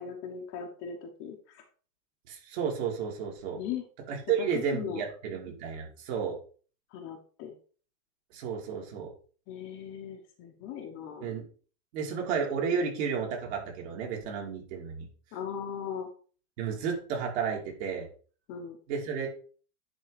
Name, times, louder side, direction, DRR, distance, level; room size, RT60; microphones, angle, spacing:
voice 1, 0.0-1.6 3.6-3.8 4.4-5.0 6.9-7.5 9.5-11.3 15.3-16.1 18.5-18.8, left 7 dB, 30° left, 3 dB, 1.1 m, -38 dB
voice 2, 2.3-3.6 4.1-6.4 8.3-9.1 11.2-11.5 11.9-15.1 16.6-18.1 18.9-19.3, right 6 dB, 45° right, 0 dB, 3.0 m, -32 dB
10.5 x 3.9 x 5.1 m, 0.41 s
supercardioid pair, 170°, 44 cm